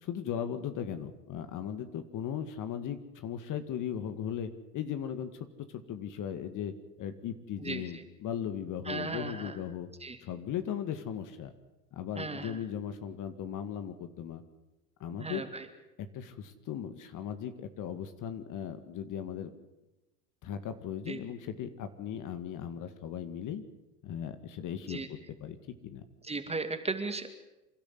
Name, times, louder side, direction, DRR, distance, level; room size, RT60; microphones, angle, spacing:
voice 1, 0.0-9.9 10.2-11.5 11.9-14.4 15.0-15.5 16.1-19.5 20.4-23.6 24.0-25.0 25.4-25.6 25.8-26.0, left 9 dB, 40° left, 10 dB, 2.0 m, -37 dB
voice 2, 8.9-9.6 10.0-10.2 12.2-12.6 15.2-15.7 21.1-21.2 24.8-25.1 26.2-27.3, right 3 dB, 15° right, 7 dB, 2.2 m, -36 dB
27.5 x 12.5 x 9.5 m, 1.0 s
hypercardioid pair, 100°, 47 cm